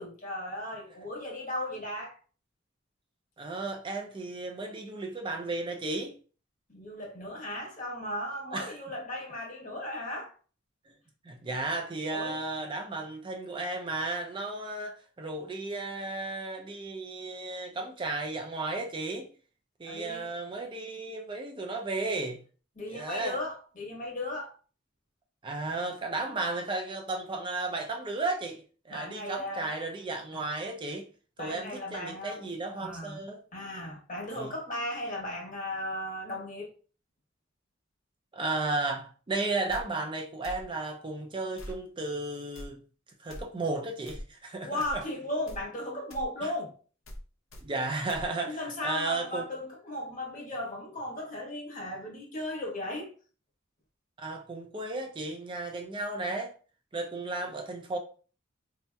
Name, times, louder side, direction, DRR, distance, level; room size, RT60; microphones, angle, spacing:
voice 1, 0.0-2.2 6.7-10.3 12.1-12.4 19.8-20.3 22.8-24.6 28.9-29.7 30.3-30.4 31.4-32.5 32.8-33.2 33.5-36.7 44.6-46.7 48.4-53.1, left 1 dB, 45° left, 1.1 m, -36 dB
voice 2, 3.4-6.1 8.5-8.7 11.2-19.3 19.8-22.4 22.9-23.4 25.4-31.1 31.4-33.4 34.3-34.5 38.3-42.8 43.2-45.0 47.6-49.4 54.2-56.5 56.9-58.0, right 2 dB, 25° right, 0.4 m, -34 dB
sound 1, 39.7-39.8 40.4-40.7 41.6-41.8 42.5-42.7 43.3-43.4 44.1-44.3 44.8-45.0 45.5-45.6 46.1-46.3 47.1-47.2 47.5-47.6 48.1-48.3, equal, 90° left, 0.7 m, -42 dB
4.1 x 2.8 x 2.2 m
head